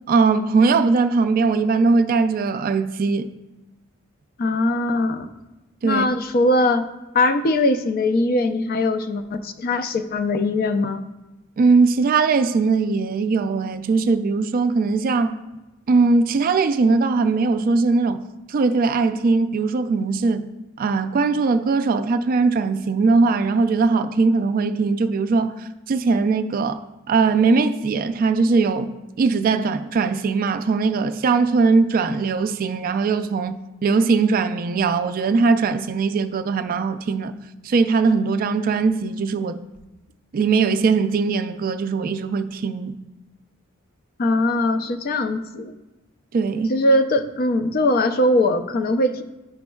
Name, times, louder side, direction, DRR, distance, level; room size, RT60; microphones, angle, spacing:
voice 1, 0.1-3.3 5.8-6.1 11.6-15.4 15.9-18.2 18.5-20.5 20.8-37.4 37.6-39.6 40.3-43.0 46.3-46.8, right 4 dB, 45° right, 0.3 m, -20 dB
voice 2, 4.4-5.3 5.8-6.9 7.1-11.0 44.2-45.7 46.7-49.2, left 2 dB, 45° left, 0.4 m, -21 dB
10.5 x 5.2 x 2.3 m
head